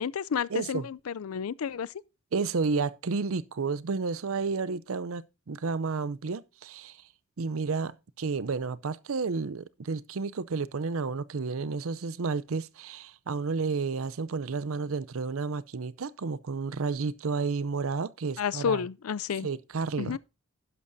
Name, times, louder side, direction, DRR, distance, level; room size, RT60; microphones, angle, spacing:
voice 1, 0.0-1.9 18.4-19.5 20.0-20.2, left 7 dB, 85° left, 0.4 m, -31 dB
voice 2, 0.5-0.9 2.3-7.0 7.4-18.8 19.4-20.2, right 4 dB, 75° right, 0.6 m, -31 dB
11.5 x 11.0 x 2.7 m
head